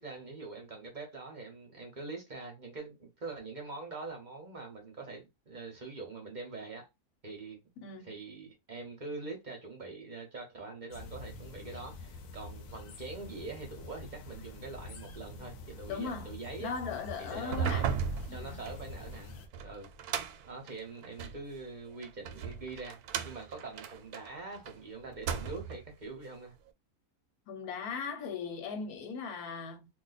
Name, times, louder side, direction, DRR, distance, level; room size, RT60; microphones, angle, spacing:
voice 1, 0.0-6.9 7.2-7.6 8.0-16.7 17.2-17.9 18.3-19.9 20.4-23.0 23.2-26.5, right 3 dB, 40° right, 0.8 m, -44 dB
voice 2, 7.8-8.1 15.9-16.3 16.6-18.0 18.3-18.6 27.5-29.9, left 5 dB, 85° left, 1.3 m, -38 dB
sound 1, 10.9-19.5, left 3 dB, 70° left, 1.0 m, -46 dB
sound 2, 17.4-21.4 22.0-24.7 25.1-25.9, right 7 dB, 85° right, 1.1 m, -36 dB
2.8 x 2.1 x 3.9 m
omnidirectional pair, 1.6 m